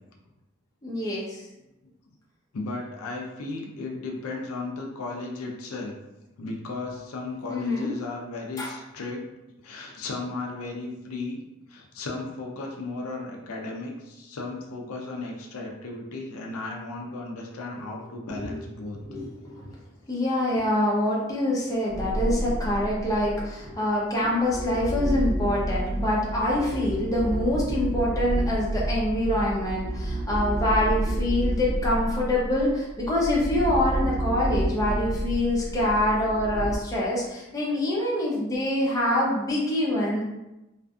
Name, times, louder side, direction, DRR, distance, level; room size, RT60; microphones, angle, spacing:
voice 1, 0.8-1.4 7.5-7.9 8.6-8.7 18.3-18.6 19.0-19.7 20.1-40.2, left 1 dB, 15° left, -5 dB, 0.6 m, -25 dB
voice 2, 2.5-6.0 6.4-9.2 9.6-11.4 11.7-19.0 19.4-19.5, left 3 dB, 80° left, 0 dB, 0.5 m, -35 dB
sound 1, 21.9-23.6 24.2-36.8, right 1 dB, 45° right, 0.3 m, -29 dB
2.5 x 2.4 x 2.3 m, 0.95 s
head